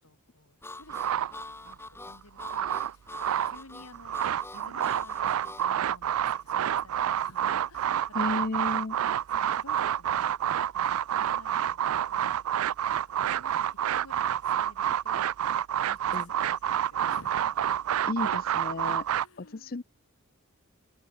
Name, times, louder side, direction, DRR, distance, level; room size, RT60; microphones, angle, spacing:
voice 1, 0.0-4.3 4.5-8.8 9.3-12.4 12.9-15.5 15.9-17.6 19.2-19.8, left 2 dB, 90° left, 6.8 m, -53 dB
Harmonica, 0.6-5.7, left 2 dB, 10° left, 2.6 m, -44 dB
sound 1, 0.9-1.8 2.2-3.6 3.9-19.3, right 10 dB, 75° right, 0.4 m, -28 dB
voice 2, 8.1-9.0 16.1-16.3 18.1-19.1 19.4-19.8, left 3 dB, 45° left, 0.6 m, -33 dB
open air
head